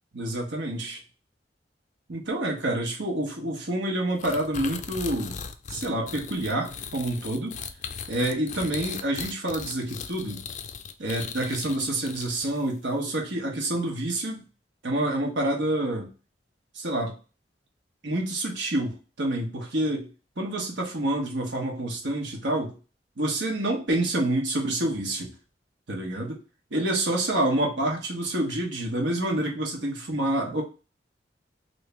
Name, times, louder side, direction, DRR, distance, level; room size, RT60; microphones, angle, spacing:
voice 1, 0.1-1.0 2.1-5.4 5.7-7.6 8.1-10.4 11.0-14.4 14.8-16.1 16.7-17.1 18.0-20.1 20.4-22.8 23.2-25.3 25.9-26.4 26.7-30.6, right 1 dB, 85° right, 0 dB, 1.0 m, -28 dB
sound 1, 4.2-12.7, left 6 dB, 45° left, 0.3 m, -38 dB
3.1 x 2.7 x 3.3 m, 0.35 s
head